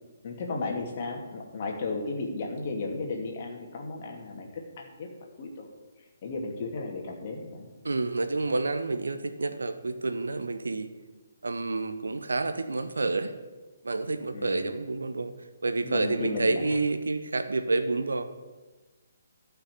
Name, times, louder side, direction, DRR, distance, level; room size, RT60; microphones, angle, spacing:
voice 1, 0.2-5.1 5.4-5.7 6.2-7.7 14.3-14.7 15.8-16.8, left 3 dB, 40° left, 1 dB, 2.5 m, -34 dB
voice 2, 7.8-10.9 11.4-13.3 13.8-15.3 15.6-18.2, right 3 dB, 70° right, 9 dB, 1.0 m, -29 dB
13.5 x 5.9 x 8.4 m, 1.2 s
figure-of-eight pair, 135°, 0 cm